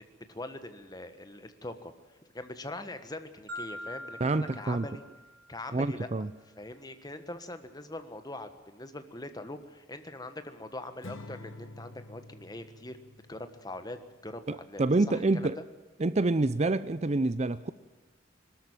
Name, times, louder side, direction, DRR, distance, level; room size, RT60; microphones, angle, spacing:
voice 1, 0.3-1.9 2.3-5.0 5.5-6.3 6.6-13.0 13.3-14.0 14.2-15.5, left 2 dB, 20° left, 1.4 m, -42 dB
Marimba xylophone, 3.5-5.7, left 1 dB, 55° right, 4.3 m, -43 dB
voice 2, 4.2-4.9 5.7-6.3 14.5-15.6 16.0-17.7, right 2 dB, 35° right, 0.5 m, -27 dB
Acoustic guitar / Strum, 11.0-14.4, left 2 dB, 90° left, 1.7 m, -48 dB
22.5 x 13.0 x 8.9 m
head